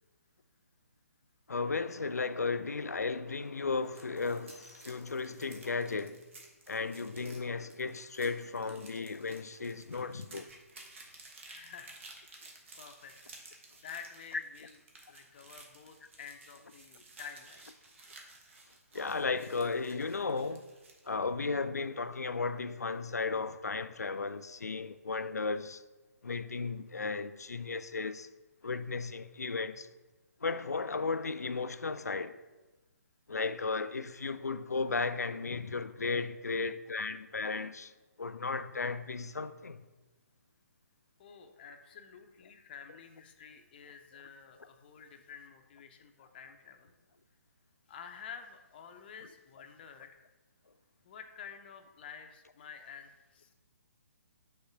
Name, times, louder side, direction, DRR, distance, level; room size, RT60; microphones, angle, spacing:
voice 1, 1.5-6.2 6.7-10.5 14.3-14.4 18.9-20.6 21.1-25.8 26.2-28.3 28.6-29.9 30.4-32.4 33.3-37.9 38.2-39.8, left 4 dB, 80° left, 0.4 m, -35 dB
sound 1, 3.7-21.1, right 3 dB, 50° right, 1.2 m, -55 dB
voice 2, 11.4-12.0 12.2-13.4 13.8-14.8 15.1-17.6 41.2-46.9 47.9-50.3 51.0-53.5, left 7 dB, 35° left, 0.6 m, -50 dB
5.4 x 3.7 x 5.7 m
figure-of-eight pair, 135°, 9 cm